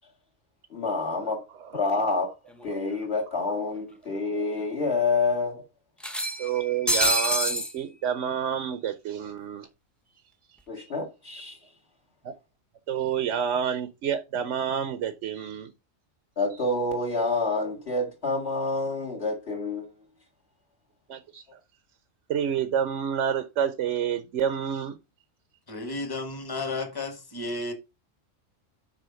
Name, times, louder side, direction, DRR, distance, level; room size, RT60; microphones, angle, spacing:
voice 1, 0.7-1.4 1.7-2.3 2.6-5.6 10.7-11.6 16.4-19.9, left 3 dB, 50° left, 2.2 m, -27 dB
sound 1, 2.6-2.7 3.0-3.1 4.2-4.3 4.6-4.7 6.0-7.7, equal, ahead, 0.6 m, -26 dB
voice 2, 6.4-9.7 12.2-12.3 12.9-15.7 16.5-16.6 21.1-21.4 22.3-25.0, right 8 dB, 65° right, 1.0 m, -28 dB
voice 3, 25.7-27.7, left 2 dB, 20° left, 1.3 m, -33 dB
6.3 x 4.5 x 5.7 m
omnidirectional pair, 1.4 m